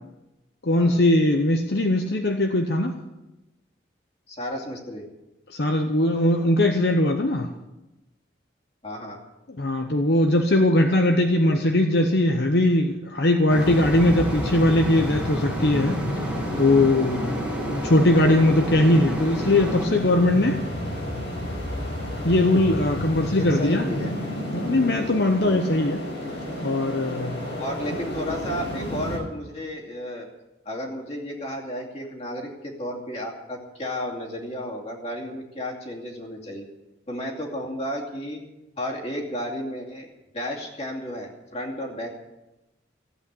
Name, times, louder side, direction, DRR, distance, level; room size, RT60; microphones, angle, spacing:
voice 1, 0.6-3.0 5.5-7.5 9.6-17.3 17.7-20.6 22.2-23.9 24.5-26.0 26.6-27.4, left 1 dB, 65° left, 4 dB, 0.9 m, -20 dB
voice 2, 4.3-5.0 8.8-9.2 23.3-24.1 27.6-30.3 30.6-36.7 37.1-38.4 38.8-40.1 40.3-42.2, equal, 35° left, -1 dB, 2.6 m, -33 dB
sound 1, 13.5-19.9, right 1 dB, 5° right, 1.6 m, -32 dB
sound 2, 13.6-29.2, equal, 85° left, 5.4 m, -31 dB
15.5 x 8.5 x 8.4 m, 1.0 s
head